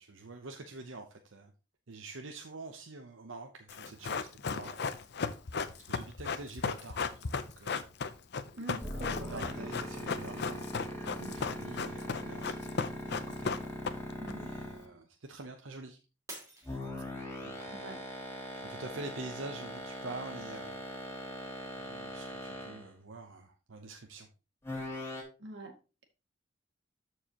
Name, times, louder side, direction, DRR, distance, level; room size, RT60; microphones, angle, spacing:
voice 1, 0.0-1.5 1.9-4.9 5.8-7.9 9.1-13.5 14.4-16.0 17.4-18.0 18.5-20.8 21.8-24.3, right 3 dB, 85° right, 4 dB, 0.8 m, -46 dB
Run, 3.7-14.3 14.6-14.7, left 5 dB, 60° left, 0.6 m, -35 dB
voice 2, 8.5-9.7 11.0-11.3 14.2-14.5 17.8-18.0 25.4-25.7, right 2 dB, 60° right, 3 dB, 2.0 m, -44 dB
sound 1, 8.8-14.9 16.6-22.9 24.6-25.2, left 1 dB, 15° left, 2.4 m, -40 dB
Shatter, 16.3-17.6 18.1-18.5 19.1-19.2, right 2 dB, 15° right, 2.6 m, -49 dB
13.5 x 4.7 x 2.9 m, 0.31 s
head